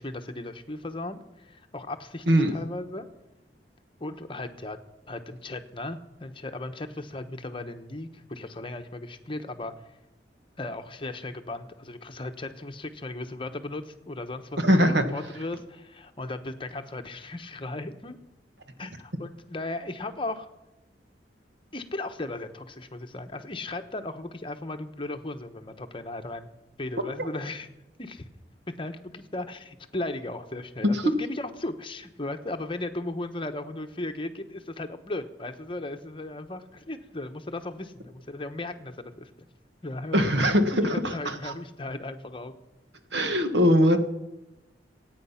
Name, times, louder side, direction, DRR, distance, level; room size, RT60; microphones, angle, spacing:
voice 1, 0.0-3.1 4.0-4.8 5.1-9.9 10.6-18.2 18.8-20.5 21.7-26.5 26.8-27.7 28.0-28.2 28.7-39.5 39.8-40.3 40.7-42.5, left 2 dB, 30° left, 7 dB, 1.1 m, -36 dB
voice 2, 14.6-15.0 27.2-27.3 30.9-31.1 40.1-41.5 43.1-44.0, equal, 70° right, 7 dB, 1.7 m, -22 dB
25.0 x 9.2 x 5.8 m, 1.0 s
head